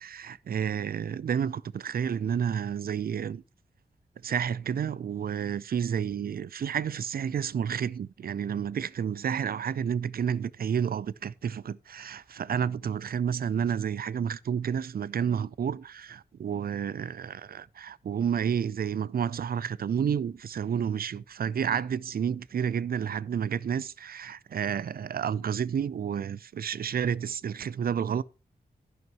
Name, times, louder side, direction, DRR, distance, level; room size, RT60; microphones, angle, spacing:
voice 1, 0.0-3.4 4.2-28.2, right 8 dB, 70° right, 0.5 m, -30 dB
11.0 x 11.0 x 3.0 m
wide cardioid pair, 95°, 16 cm